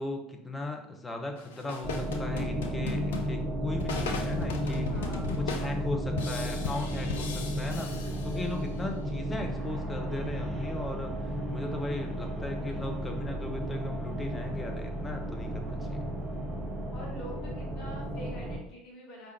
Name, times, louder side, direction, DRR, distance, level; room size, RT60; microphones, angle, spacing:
voice 1, 0.0-4.9 5.2-16.1, left 2 dB, 15° left, 3 dB, 0.8 m, -37 dB
sound 1, 1.4-8.8, left 5 dB, 70° left, 0.5 m, -38 dB
sound 2, 1.8-18.6, equal, 10° right, 1.0 m, -33 dB
voice 2, 4.8-5.3 16.9-19.3, equal, 50° left, -2 dB, 1.1 m, -45 dB
4.9 x 3.4 x 2.8 m, 0.76 s
figure-of-eight pair, 70°, 0 cm